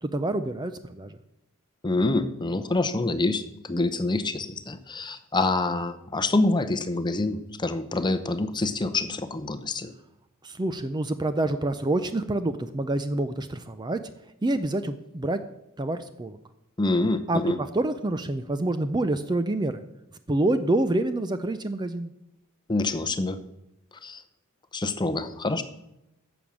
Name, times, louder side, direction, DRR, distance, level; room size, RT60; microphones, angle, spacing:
voice 1, 0.0-1.2 10.4-14.0 14.4-15.4 15.8-16.4 17.3-19.8 20.3-22.1, right 2 dB, 20° right, 10 dB, 0.5 m, -27 dB
voice 2, 1.8-9.9 16.8-17.6 22.7-23.4 24.0-24.2 24.7-25.6, left 2 dB, 20° left, 9 dB, 0.7 m, -26 dB
11.0 x 7.1 x 7.3 m, 0.85 s
head